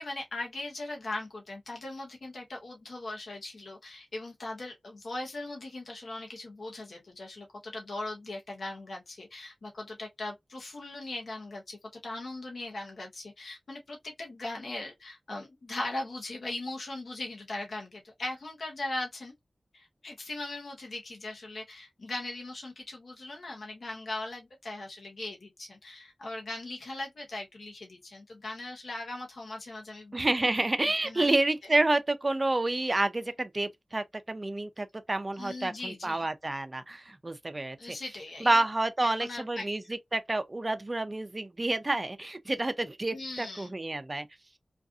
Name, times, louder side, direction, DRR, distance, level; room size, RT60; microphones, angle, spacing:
voice 1, 0.0-19.3 19.7-30.2 31.0-31.3 35.4-36.3 37.8-38.6 39.0-39.9 43.1-43.7, left 2 dB, 75° left, 0.8 m, -39 dB
voice 2, 30.1-38.0 38.4-39.8 40.1-44.3, right 2 dB, 30° right, 0.4 m, -29 dB
2.5 x 2.4 x 2.4 m
wide cardioid pair, 75°, 0 cm